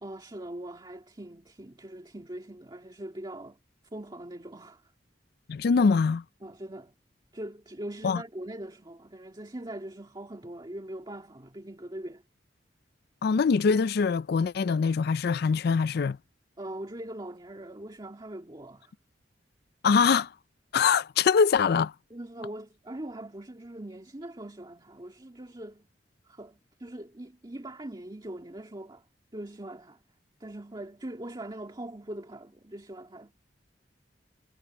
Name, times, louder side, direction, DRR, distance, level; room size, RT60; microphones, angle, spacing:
voice 1, 0.0-3.6 3.9-4.8 6.4-6.9 7.3-12.2 16.6-18.9 22.1-25.9 26.2-29.1 29.3-30.0 30.4-33.3, right 1 dB, 25° right, 2.0 m, -41 dB
voice 2, 5.5-6.2 8.0-8.2 13.2-16.2 19.8-20.3 20.7-21.9, left 5 dB, 60° left, 0.4 m, -23 dB
head